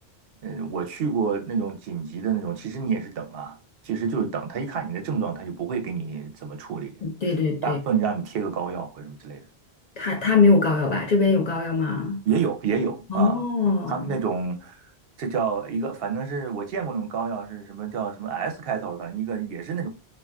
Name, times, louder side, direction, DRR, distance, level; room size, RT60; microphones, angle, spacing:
voice 1, 0.4-3.6 3.8-7.0 7.6-9.5 12.3-13.4 13.9-14.9 15.2-19.9, right 6 dB, 70° right, 0.7 m, -28 dB
voice 2, 7.0-7.8 10.0-12.2 13.1-14.2, left 4 dB, 50° left, 0.6 m, -22 dB
2.3 x 2.3 x 3.3 m
omnidirectional pair, 1.1 m